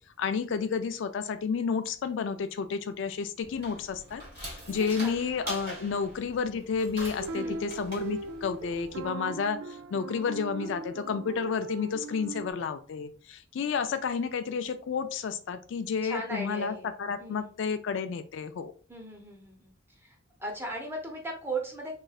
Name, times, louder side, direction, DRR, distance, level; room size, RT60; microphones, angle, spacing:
voice 1, 0.2-18.7, left 6 dB, 65° left, 9 dB, 0.3 m, -31 dB
sound 1, 3.4-9.1, right 1 dB, 50° right, 1.5 m, -43 dB
voice 2, 4.6-5.2 5.8-6.0 7.3-7.6 10.5-10.7 16.0-16.9 17.2-17.5 18.9-21.9, right 2 dB, 10° right, 0 dB, 0.8 m, -38 dB
sound 2, 7.2-12.5, right 3 dB, 80° right, 0.4 m, -39 dB
3.8 x 3.1 x 2.3 m, 0.41 s
head